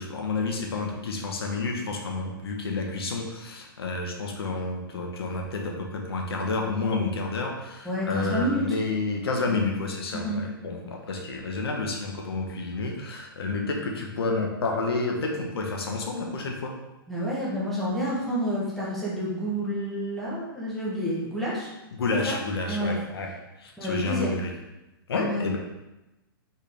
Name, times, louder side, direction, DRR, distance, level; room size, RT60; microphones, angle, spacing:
voice 1, 0.0-16.8 21.9-23.3 23.6-24.5 25.1-25.6, left 3 dB, 85° left, 1 dB, 1.0 m, -30 dB
voice 2, 7.8-8.6 10.1-10.4 17.1-21.7 22.3-22.4 22.7-22.9 23.8-24.3 25.2-25.5, equal, ahead, -9 dB, 0.9 m, -29 dB
4.4 x 3.4 x 3.4 m, 0.99 s
hypercardioid pair, 165°, 12 cm